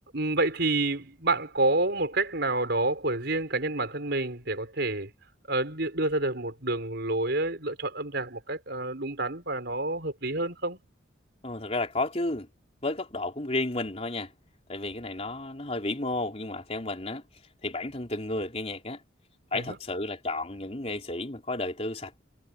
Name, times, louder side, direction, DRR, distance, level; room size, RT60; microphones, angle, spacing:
voice 1, 0.1-5.1 5.5-10.8 19.5-19.8, right 2 dB, 55° right, 5.8 m, -28 dB
voice 2, 11.4-12.5 12.8-14.3 14.7-17.2 17.6-19.0 19.5-22.2, left 2 dB, 30° left, 3.6 m, -32 dB
head